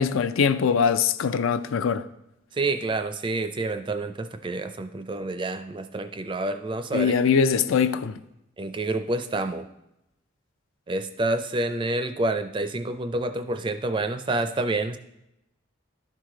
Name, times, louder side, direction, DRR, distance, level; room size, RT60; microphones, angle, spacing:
voice 1, 0.0-2.0 6.9-8.2, left 6 dB, 80° left, 0.4 m, -22 dB
voice 2, 2.5-7.2 8.6-9.7 10.9-15.0, right 2 dB, 25° right, 0.4 m, -28 dB
12.0 x 4.7 x 3.8 m
head